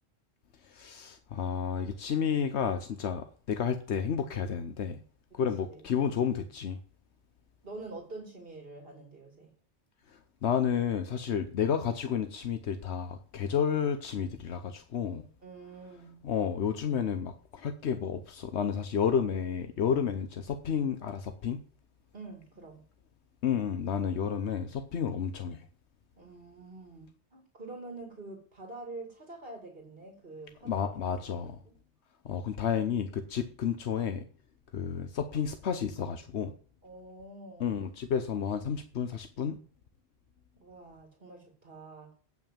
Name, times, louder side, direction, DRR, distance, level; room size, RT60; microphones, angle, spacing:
voice 1, 0.6-5.0 5.3-6.8 10.1-15.2 16.2-21.6 23.4-25.6 30.6-31.6 32.2-34.2 34.7-36.5 37.6-39.6, left 7 dB, 80° left, 8 dB, 1.1 m, -31 dB
voice 2, 7.6-9.5 15.4-16.2 22.1-22.8 26.2-31.8 36.8-37.7 40.6-42.1, right 2 dB, 55° right, 2 dB, 2.6 m, -46 dB
8.9 x 6.0 x 7.3 m, 0.43 s
omnidirectional pair, 1.1 m